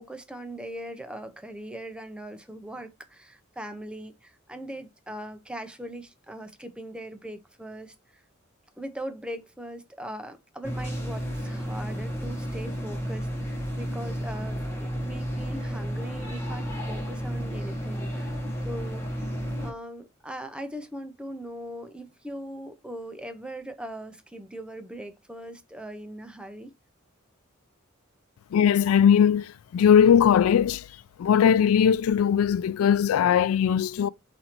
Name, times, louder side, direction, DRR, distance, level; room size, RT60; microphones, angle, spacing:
voice 1, 0.0-8.2 8.8-18.4 18.6-19.1 19.6-26.7, right 1 dB, 5° right, 0.6 m, -40 dB
sound 1, 10.6-19.7, equal, 10° left, 1.1 m, -32 dB
voice 2, 28.5-30.8 31.2-34.1, left 8 dB, 75° left, 0.3 m, -20 dB
4.2 x 2.7 x 4.3 m
head